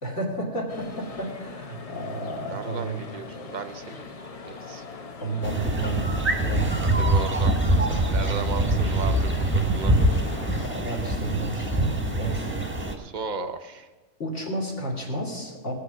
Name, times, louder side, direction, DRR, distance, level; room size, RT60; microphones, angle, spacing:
voice 1, 0.0-3.0 5.2-7.0 8.2-8.4 10.6-12.6 14.2-15.7, right 2 dB, 55° left, -3 dB, 3.1 m, -32 dB
sound 1, 0.7-10.7, left 4 dB, 35° left, 0.6 m, -41 dB
voice 2, 2.5-4.1 4.4-4.8 6.8-7.5 7.9-10.2 13.0-13.9, right 5 dB, 45° right, 8 dB, 0.7 m, -35 dB
sound 2, 5.4-12.9, right 1 dB, 10° right, 1.2 m, -24 dB
19.5 x 6.6 x 6.1 m, 1.2 s
omnidirectional pair, 1.4 m